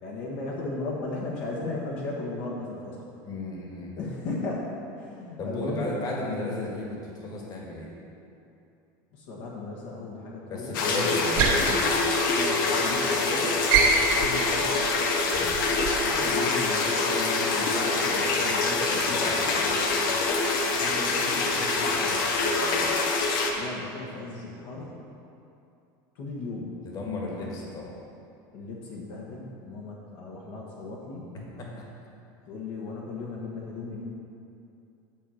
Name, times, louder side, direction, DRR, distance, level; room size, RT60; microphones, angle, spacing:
voice 1, 0.0-3.0 4.0-4.7 5.0-5.9 9.1-10.7 12.3-13.6 14.2-14.8 16.0-20.2 20.7-22.2 23.6-25.0 26.2-26.8 27.4-27.5 28.5-31.3 32.5-34.0, left 3 dB, 65° left, -3 dB, 1.3 m, -36 dB
voice 2, 3.2-3.9 5.4-7.9 10.5-12.2 15.3-15.6 19.1-19.7 22.6-22.9 26.8-27.9 31.3-31.8, left 2 dB, 40° left, -2 dB, 1.7 m, -35 dB
sound 1, 10.7-23.5, left 3 dB, 85° left, 1.0 m, -25 dB
sound 2, 11.3-12.8 13.1-13.3 13.7-16.2, right 5 dB, 75° right, 1.8 m, -26 dB
9.0 x 4.3 x 6.4 m, 2.6 s
supercardioid pair, 130°, 11 cm